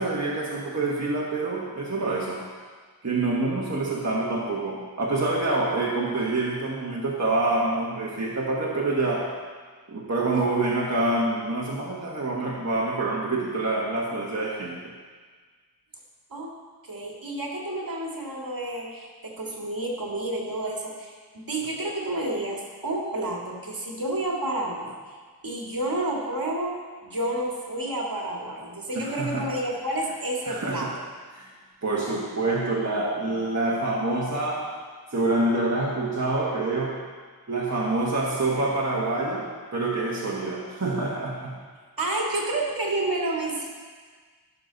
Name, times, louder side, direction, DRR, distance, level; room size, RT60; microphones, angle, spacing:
voice 1, 0.0-2.4 3.0-9.3 9.9-14.8 28.9-29.5 30.5-30.9 31.3-31.5 31.8-34.7 35.1-37.0 37.5-41.6, right 2 dB, 45° right, -4 dB, 1.5 m, -26 dB
voice 2, 16.8-25.2 25.4-30.9 42.0-43.7, right 1 dB, 65° right, -2 dB, 2.1 m, -30 dB
16.0 x 6.7 x 4.0 m, 1.5 s
wide cardioid pair, 55°, 38 cm